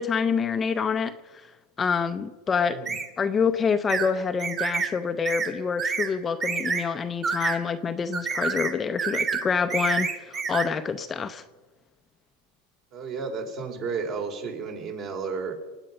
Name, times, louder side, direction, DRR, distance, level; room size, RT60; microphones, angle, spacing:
voice 1, 0.0-1.5 1.8-2.8 3.2-11.4, left 6 dB, 20° left, 8 dB, 0.7 m, -27 dB
sound 1, 2.9-3.1 3.9-4.1 4.4-4.9 5.3-5.5 5.8-6.1 6.4-6.8 7.2-7.6 8.1-8.7 9.0-9.4 9.7-10.7, right 5 dB, 25° right, 2.3 m, -27 dB
voice 2, 12.9-15.7, right 5 dB, 45° right, 3 dB, 3.8 m, -32 dB
26.0 x 9.1 x 5.5 m, 1.2 s
supercardioid pair, 130°, 0 cm